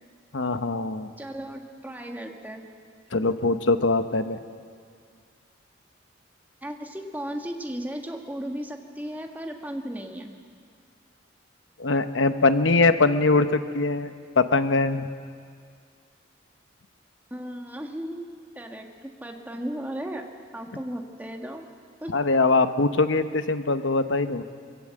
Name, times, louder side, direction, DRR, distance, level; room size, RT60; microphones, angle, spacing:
voice 1, 0.3-1.1 3.1-4.4 11.8-14.1 14.4-15.1 22.1-24.4, left 3 dB, 75° left, 10 dB, 0.9 m, -22 dB
voice 2, 1.2-2.6 6.6-10.3 17.3-18.3 18.5-20.2 20.5-21.7 22.0-22.1, equal, 10° right, 2 dB, 1.5 m, -35 dB
23.0 x 16.5 x 7.7 m, 2.1 s
head